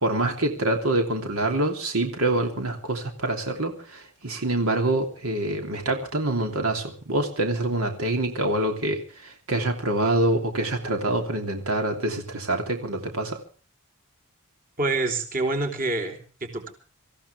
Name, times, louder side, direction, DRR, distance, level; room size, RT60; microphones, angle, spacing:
voice 1, 0.0-13.4, right 2 dB, 80° right, 3.1 m, -26 dB
voice 2, 14.8-16.7, right 2 dB, 40° right, 3.5 m, -27 dB
26.0 x 15.0 x 3.5 m
head